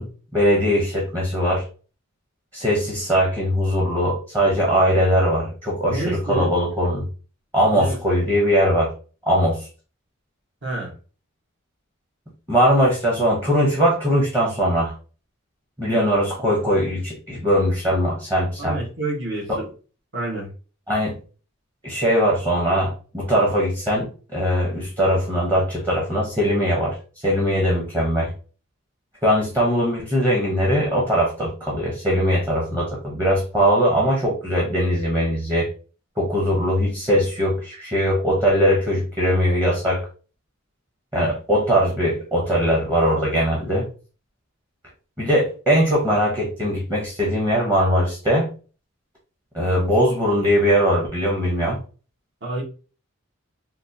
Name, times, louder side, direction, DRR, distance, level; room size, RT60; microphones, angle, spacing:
voice 1, 0.0-1.6 2.5-7.1 7.5-8.9 9.3-9.7 12.5-14.9 15.8-18.8 19.5-19.6 20.9-21.2 21.8-27.0 27.2-28.3 29.2-35.7 36.2-40.1 41.1-43.9 45.2-48.5 49.5-51.8, equal, 15° right, -3 dB, 0.8 m, -20 dB
voice 2, 5.9-6.5 7.7-8.1 10.6-10.9 18.6-19.7 20.1-20.5 52.4-52.6, right 2 dB, 55° right, -2 dB, 1.2 m, -28 dB
3.7 x 2.4 x 2.7 m, 0.37 s
head